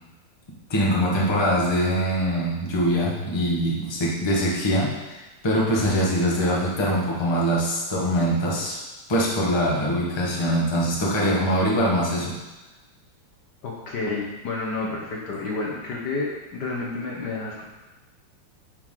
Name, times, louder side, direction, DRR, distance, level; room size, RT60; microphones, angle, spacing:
voice 1, 0.7-8.8 9.1-12.4, equal, 15° left, -5 dB, 1.0 m, -23 dB
voice 2, 13.6-17.6, left 3 dB, 60° left, -2 dB, 1.4 m, -30 dB
9.5 x 4.6 x 3.8 m, 1.1 s
omnidirectional pair, 2.3 m